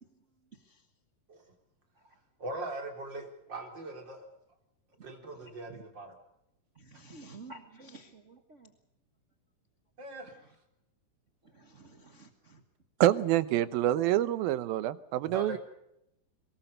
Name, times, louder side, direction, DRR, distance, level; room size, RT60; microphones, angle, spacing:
voice 1, 0.5-0.8 5.4-5.8 6.7-8.7 11.4-12.6, right 3 dB, 65° right, 6 dB, 0.7 m, -52 dB
voice 2, 2.4-4.3 5.0-6.1 10.0-10.3 15.2-15.6, right 1 dB, 30° right, 3 dB, 4.1 m, -40 dB
voice 3, 13.0-15.6, right 13 dB, 80° right, 15 dB, 2.8 m, -26 dB
24.0 x 20.5 x 6.8 m, 0.81 s
omnidirectional pair, 4.2 m